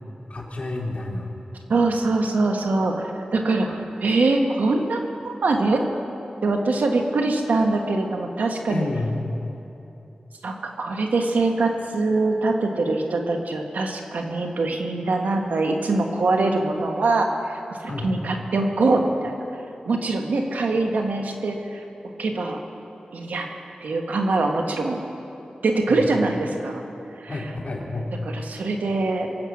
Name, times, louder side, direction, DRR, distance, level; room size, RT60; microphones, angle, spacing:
voice 1, 0.3-1.3 8.7-9.2 17.9-18.1 25.9-26.1 27.3-28.1, left 2 dB, 50° left, -2 dB, 2.9 m, -29 dB
voice 2, 1.7-5.8 6.4-8.9 10.4-19.4 19.8-21.8 22.2-22.6 23.1-23.5 23.8-25.0 25.6-26.8 27.2-27.3 28.2-29.3, right 3 dB, 85° right, 3 dB, 1.4 m, -23 dB
23.0 x 8.1 x 6.0 m, 2.9 s
cardioid pair, 50°, 3 cm